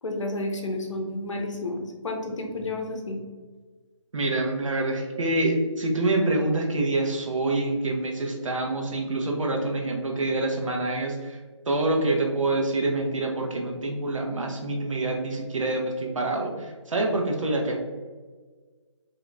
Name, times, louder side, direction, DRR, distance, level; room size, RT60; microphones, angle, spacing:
voice 1, 0.0-3.2, left 2 dB, 70° left, 2 dB, 1.0 m, -31 dB
voice 2, 4.1-11.4 11.7-17.8, right 2 dB, 80° right, 1 dB, 1.0 m, -26 dB
3.9 x 2.9 x 3.4 m, 1.4 s
figure-of-eight pair, 155°, 16 cm